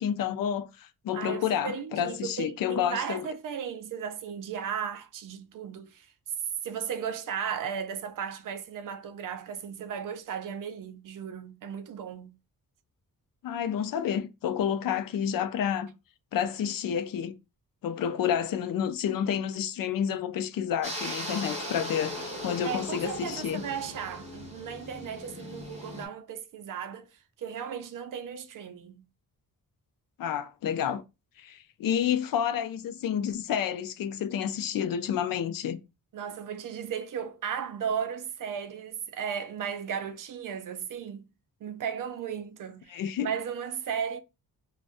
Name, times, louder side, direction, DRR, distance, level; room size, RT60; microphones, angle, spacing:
voice 1, 0.0-3.3 13.4-15.9 16.3-17.3 17.8-23.6 30.2-31.0 31.4-35.8 42.9-43.3, left 9 dB, 65° left, 0.5 m, -29 dB
voice 2, 1.1-6.1 6.6-12.4 22.6-27.1 27.4-29.0 36.1-41.3 41.6-44.2, right 7 dB, 60° right, 0.5 m, -35 dB
sound 1, 20.8-26.1, equal, 20° right, 1.1 m, -38 dB
2.5 x 2.2 x 3.4 m
cardioid pair, 105°, 36 cm